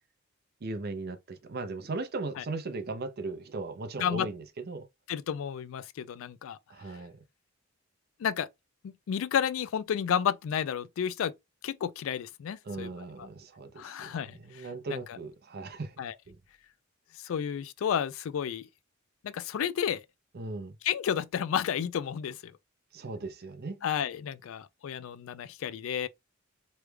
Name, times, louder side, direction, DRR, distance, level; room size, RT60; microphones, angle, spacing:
voice 1, 0.6-4.9 6.7-7.2 12.6-16.0 16.3-16.4 20.3-20.8 22.9-23.8, right 3 dB, 50° right, 0.6 m, -38 dB
voice 2, 5.1-6.6 8.2-8.5 8.8-11.3 11.6-12.9 13.2-13.3 13.8-15.2 16.0-16.1 17.2-18.7 19.2-20.0 20.8-22.5 23.8-26.1, left 8 dB, 70° left, 0.3 m, -32 dB
3.2 x 2.3 x 3.2 m
head